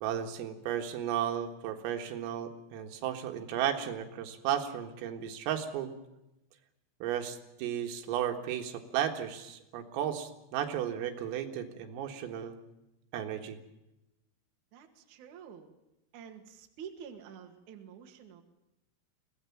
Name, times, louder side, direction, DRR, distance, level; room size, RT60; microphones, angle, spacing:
voice 1, 0.0-5.9 7.0-12.6 13.1-13.6, right 10 dB, 90° right, 5 dB, 4.4 m, -34 dB
voice 2, 14.7-15.7 16.1-18.4, right 7 dB, 50° right, 4 dB, 2.7 m, -48 dB
23.0 x 17.5 x 7.2 m, 0.93 s
omnidirectional pair, 5.8 m